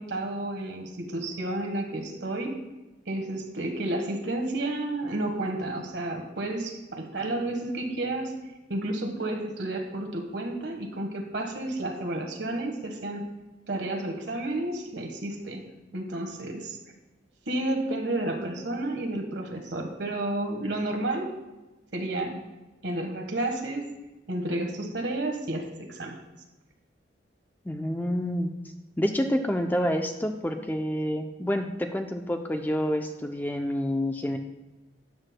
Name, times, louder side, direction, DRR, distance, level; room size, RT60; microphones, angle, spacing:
voice 1, 0.0-2.6 3.1-8.3 8.7-13.2 13.7-15.6 15.9-16.8 17.5-21.3 21.9-22.4 22.8-23.9 24.3-26.2, right 1 dB, 70° right, 3 dB, 1.4 m, -31 dB
voice 2, 27.6-28.6 29.0-34.4, equal, 10° left, 5 dB, 0.4 m, -28 dB
13.0 x 9.4 x 2.2 m, 1.1 s
head